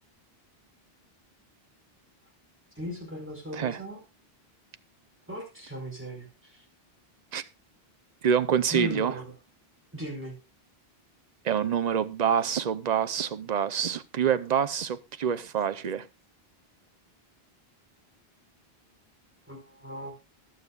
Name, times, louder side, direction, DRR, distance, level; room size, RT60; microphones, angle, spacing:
voice 1, 2.7-4.0 5.3-6.6 8.7-9.2 9.9-10.3 19.5-20.1, left 1 dB, 10° right, 4.9 m, -37 dB
voice 2, 8.2-9.1 11.4-16.1, right 8 dB, 45° right, 0.7 m, -26 dB
20.5 x 7.2 x 2.3 m
omnidirectional pair, 1.0 m